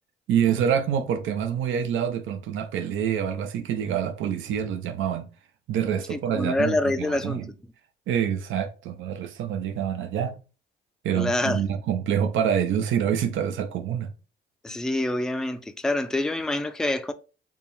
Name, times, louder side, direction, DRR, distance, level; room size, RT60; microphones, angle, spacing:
voice 1, 0.3-5.3 5.7-7.5 8.1-10.4 11.0-14.1, right 8 dB, 75° right, 0.6 m, -26 dB
voice 2, 6.1-7.5 11.2-11.6 14.6-17.1, left 1 dB, 5° left, 0.4 m, -26 dB
3.5 x 2.2 x 4.2 m
cardioid pair, 90°, 20 cm